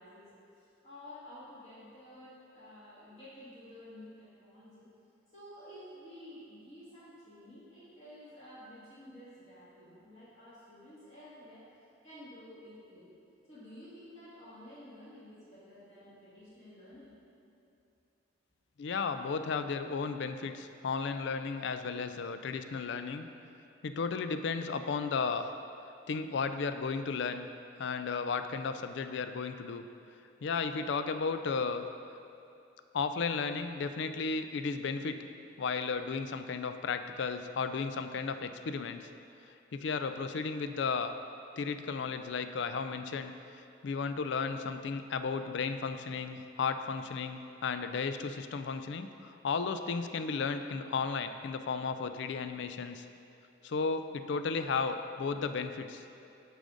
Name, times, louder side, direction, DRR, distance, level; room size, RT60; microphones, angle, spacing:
voice 1, 0.0-4.9 5.3-13.1 13.5-17.1, left 1 dB, 35° left, -11 dB, 2.0 m, -52 dB
voice 2, 18.8-23.3 23.8-25.5 26.1-27.5 27.8-29.8 30.4-31.8 32.9-35.2 35.6-39.1 39.7-41.2 41.6-53.0 53.6-56.0, left 5 dB, 60° left, 9 dB, 0.4 m, -34 dB
11.5 x 4.9 x 3.9 m, 2.6 s
head